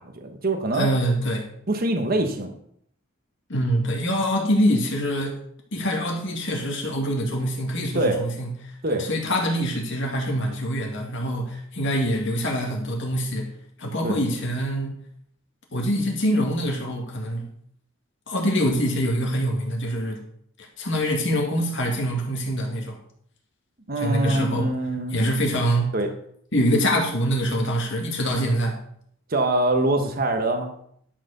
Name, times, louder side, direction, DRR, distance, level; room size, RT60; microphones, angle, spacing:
voice 1, 0.0-0.9 1.7-2.5 7.9-8.2 8.8-9.0 14.0-14.2 23.9-25.2 25.9-26.1 29.3-30.7, right 1 dB, 40° right, 5 dB, 1.1 m, -24 dB
voice 2, 0.7-1.5 3.5-5.3 5.7-8.5 8.9-13.5 13.8-14.9 15.7-17.5 18.3-20.2 20.8-23.0 24.0-24.7 25.1-25.9 26.5-28.8, equal, 55° left, 0 dB, 2.1 m, -24 dB
11.5 x 4.8 x 6.6 m, 0.66 s
head